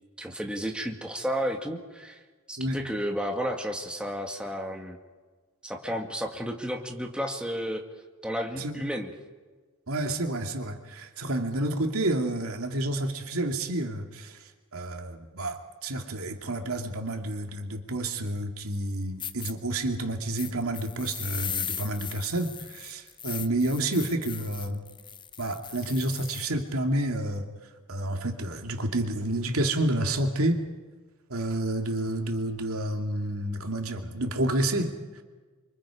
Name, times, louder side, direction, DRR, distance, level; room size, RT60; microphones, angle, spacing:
voice 1, 0.2-2.2 2.5-5.0 5.6-7.8 8.2-9.1, equal, 5° right, 1 dB, 2.0 m, -32 dB
voice 2, 9.9-14.4 14.7-24.8 25.4-27.5 27.9-30.6 31.3-35.0, right 1 dB, 80° right, 3 dB, 2.6 m, -29 dB
sound 1, 18.8-18.9 19.2-19.5 20.4-26.5, left 8 dB, 20° left, 0.7 m, -38 dB
29.5 x 24.5 x 5.0 m, 1.3 s
head